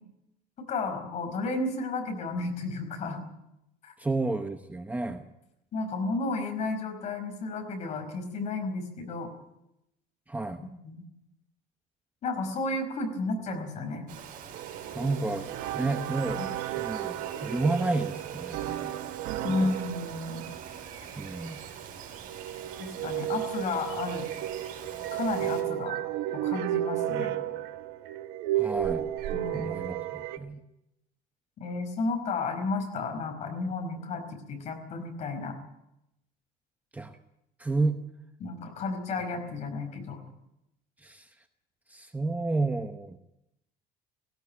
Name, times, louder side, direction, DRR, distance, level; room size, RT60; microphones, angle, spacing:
voice 1, 0.6-3.2 3.8-3.9 5.7-9.3 10.8-11.0 12.2-14.1 16.4-16.5 19.4-20.5 22.8-24.3 25.1-26.0 26.3-27.3 29.3-29.9 31.6-35.6 38.4-40.2, left 3 dB, 45° left, 5 dB, 5.1 m, -32 dB
voice 2, 4.0-5.2 10.3-10.6 14.9-15.5 15.7-16.4 16.8-17.2 17.4-19.0 19.5-19.7 21.2-21.6 28.5-29.1 29.5-30.6 36.9-37.1 37.6-38.0 41.0-41.3 41.9-43.2, right 3 dB, 10° right, 6 dB, 0.9 m, -31 dB
Bird vocalization bird call bird song, 14.1-25.6, right 8 dB, 55° right, 5.9 m, -44 dB
sound 1, 14.5-30.4, right 12 dB, 80° right, 1.4 m, -33 dB
18.0 x 17.0 x 9.5 m, 0.85 s
cardioid pair, 160°, 17 cm